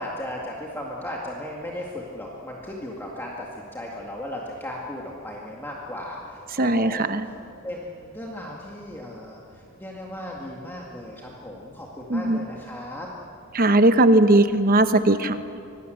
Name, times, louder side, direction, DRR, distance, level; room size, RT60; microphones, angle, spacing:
voice 1, 0.0-7.3 7.6-13.1, left 1 dB, 10° left, -3 dB, 2.1 m, -36 dB
voice 2, 6.6-7.3 12.1-12.4 13.5-15.4, right 1 dB, 45° right, 10 dB, 1.0 m, -18 dB
25.0 x 19.5 x 8.0 m, 2.6 s
head